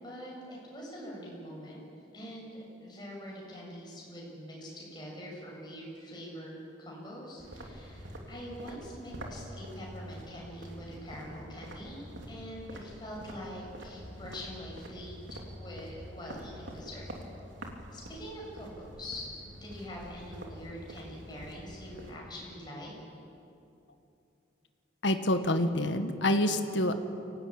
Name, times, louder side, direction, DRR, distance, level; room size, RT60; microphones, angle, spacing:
voice 1, 0.0-1.8 2.1-15.1 15.6-17.1 17.9-19.3 19.6-22.9, equal, 20° left, -3 dB, 7.1 m, -44 dB
sound 1, 7.4-22.2, equal, 80° right, 2.9 m, -46 dB
voice 2, 25.0-26.9, left 1 dB, 70° left, 7 dB, 1.5 m, -27 dB
24.5 x 17.5 x 9.0 m, 2.7 s
head